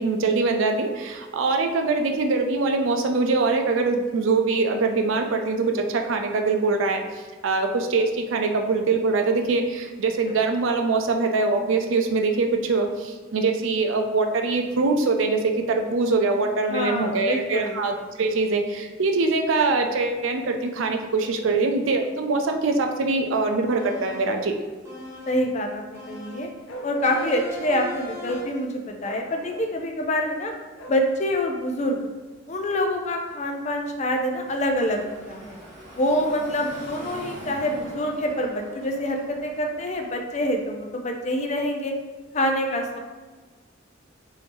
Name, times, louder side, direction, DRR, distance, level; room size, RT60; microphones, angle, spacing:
voice 1, 0.0-24.6, right 3 dB, 85° right, 4 dB, 0.5 m, -23 dB
voice 2, 16.7-17.8 25.3-26.5 26.8-30.5 30.9-32.0 32.5-35.6 36.0-41.9 42.3-43.0, left 1 dB, 35° left, 2 dB, 0.4 m, -26 dB
sound 1, 23.8-24.4 24.8-25.5 25.9-26.6 27.0-28.7, left 1 dB, 15° right, 0.8 m, -39 dB
Bark, 26.7-27.6 28.2-28.5 29.0-29.7 30.8-31.0, right 1 dB, 85° left, 0.5 m, -39 dB
Car passing by / Traffic noise roadway noise, 33.8-40.8, right 1 dB, 40° right, 1.0 m, -44 dB
3.3 x 2.6 x 3.4 m, 1.4 s
head